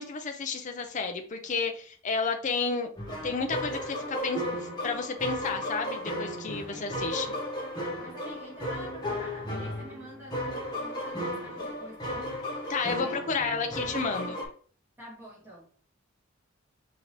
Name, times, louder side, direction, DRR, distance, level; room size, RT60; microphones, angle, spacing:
voice 1, 0.0-2.9 3.2-4.4 4.8-7.3 12.7-14.4, left 4 dB, 40° left, 5 dB, 0.5 m, -31 dB
sound 1, 3.0-14.5, equal, 20° left, 1.2 m, -34 dB
voice 2, 6.7-7.0 8.0-12.4 13.0-14.5 15.0-15.7, right 1 dB, 10° right, -5 dB, 1.6 m, -48 dB
5.1 x 2.8 x 3.1 m, 0.43 s
head